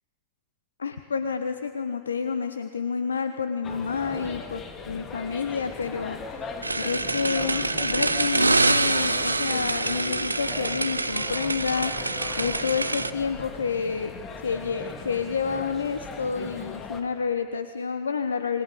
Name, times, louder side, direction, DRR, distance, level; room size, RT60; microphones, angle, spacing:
voice 1, 0.8-11.9 12.4-14.1 14.4-18.6, left 5 dB, 70° left, 10 dB, 1.0 m, -29 dB
sound 1, 3.6-17.0, left 4 dB, 25° left, 2.5 m, -39 dB
sound 2, 6.6-13.1, right 3 dB, 80° right, 0.8 m, -26 dB
27.5 x 20.5 x 8.2 m, 2.2 s
figure-of-eight pair, 90°, 0 cm